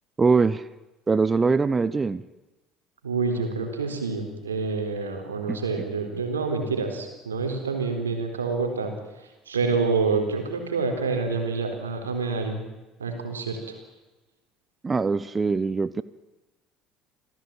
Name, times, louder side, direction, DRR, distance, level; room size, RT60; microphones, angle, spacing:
voice 1, 0.2-0.7 1.1-2.2 5.5-5.6 14.8-16.0, right 4 dB, 25° right, 16 dB, 1.0 m, -22 dB
voice 2, 3.0-8.9 9.5-12.6 13.0-13.6, right 4 dB, 90° right, 5 dB, 4.0 m, -27 dB
27.5 x 17.0 x 9.0 m, 1.1 s
hypercardioid pair, 60°, 0 cm